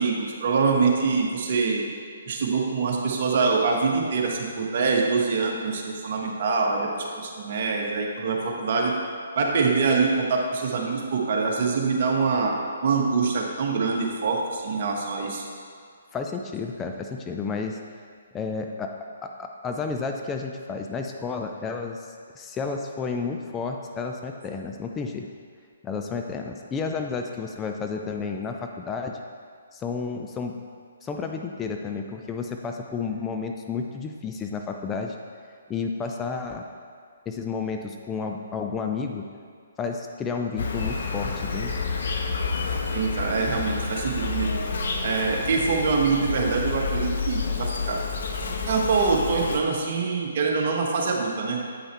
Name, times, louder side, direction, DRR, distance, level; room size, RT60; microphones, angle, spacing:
voice 1, 0.0-1.8 2.3-8.9 9.4-12.6 12.8-15.4 42.9-44.6 45.0-48.0 48.6-51.6, right 4 dB, 50° right, 0 dB, 1.3 m, -24 dB
voice 2, 16.1-17.8 18.3-18.9 19.4-22.1 22.4-25.3 25.8-29.1 29.7-30.5 31.0-35.2 35.7-36.7 37.3-39.3 39.8-41.7, left 5 dB, 15° left, 3 dB, 0.4 m, -31 dB
Insect, 40.6-49.6, left 4 dB, 60° left, 0.8 m, -29 dB
8.6 x 5.5 x 4.4 m, 2.1 s
figure-of-eight pair, 130°, 0 cm